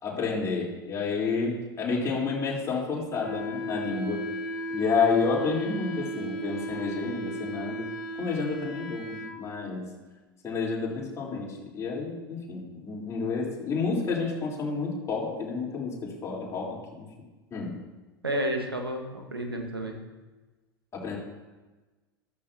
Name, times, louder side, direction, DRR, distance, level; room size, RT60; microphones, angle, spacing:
voice 1, 0.0-4.2 4.7-7.9 8.2-9.9 10.4-17.1 17.5-17.7 20.9-21.2, left 4 dB, 25° left, -4 dB, 4.1 m, -30 dB
Wind instrument woodwind instrument, 3.2-9.4, right 1 dB, 55° left, 1.7 m, -35 dB
voice 2, 18.2-19.9, right 1 dB, 85° right, 3 dB, 1.6 m, -31 dB
13.5 x 13.5 x 3.0 m, 1.2 s
figure-of-eight pair, 85°, 12 cm